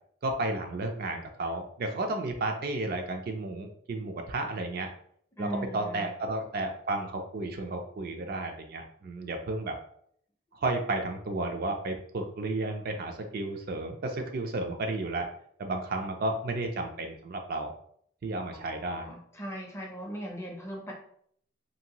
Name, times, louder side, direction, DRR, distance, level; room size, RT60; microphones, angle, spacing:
voice 1, 0.2-4.9 5.4-5.5 5.7-9.8 10.6-15.3 15.6-17.7 18.2-19.1, right 2 dB, 50° right, 4 dB, 0.4 m, -32 dB
voice 2, 5.4-6.1 18.5-20.9, equal, 15° left, 0 dB, 0.5 m, -39 dB
2.7 x 2.5 x 2.8 m, 0.65 s
head